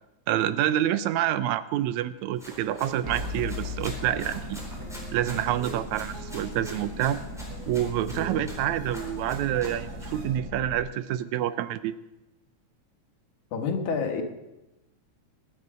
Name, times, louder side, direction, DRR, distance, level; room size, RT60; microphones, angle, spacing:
voice 1, 0.3-4.6 5.1-7.2 7.7-11.9, right 12 dB, 80° right, 14 dB, 1.9 m, -27 dB
Run, 2.4-10.3, equal, ahead, 3.7 m, -45 dB
sound 1, 2.8-10.4, right 5 dB, 50° right, 3.3 m, -47 dB
sound 2, 3.0-10.8, left 1 dB, 30° right, 3.0 m, -38 dB
voice 2, 8.1-8.5 13.5-14.2, left 5 dB, 85° left, 4 dB, 3.0 m, -29 dB
21.5 x 9.6 x 4.9 m, 0.97 s
omnidirectional pair, 3.4 m